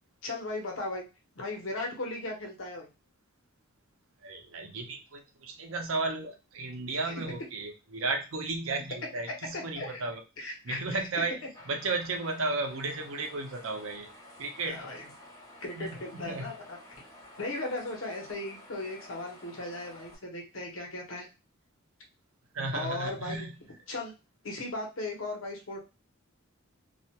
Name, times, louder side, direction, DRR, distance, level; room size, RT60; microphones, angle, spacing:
voice 1, 0.2-1.0 1.4-2.9 7.0-7.1 9.5-10.0 10.4-11.0 14.7-15.1 15.6-16.8 17.4-21.3 22.7-23.5 23.9-24.1 24.4-25.8, left 2 dB, 70° left, 0 dB, 0.9 m, -37 dB
voice 2, 4.2-11.3 11.7-14.1 14.4-14.8 15.8-16.5 22.5-23.6, right 3 dB, 85° right, 4 dB, 0.6 m, -34 dB
sound 1, 11.5-20.1, left 1 dB, 15° left, 0.7 m, -51 dB
2.4 x 2.2 x 2.8 m, 0.27 s
head